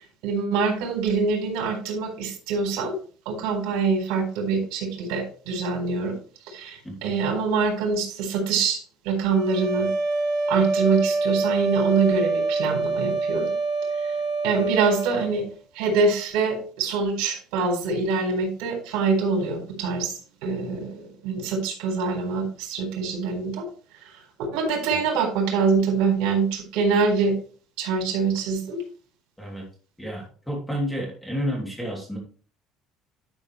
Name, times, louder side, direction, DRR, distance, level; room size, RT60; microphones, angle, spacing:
voice 1, 0.2-3.0 3.3-6.2 6.4-9.9 10.5-13.5 14.4-15.4 15.7-23.7 24.4-27.4 27.8-28.8, right 4 dB, 80° right, 3 dB, 4.0 m, -25 dB
sound 1, 9.3-15.3, right 3 dB, 55° right, 4.2 m, -25 dB
voice 2, 30.0-32.2, equal, 5° left, -1 dB, 3.0 m, -30 dB
11.5 x 6.2 x 3.3 m, 0.41 s
cardioid pair, 155°, 0 cm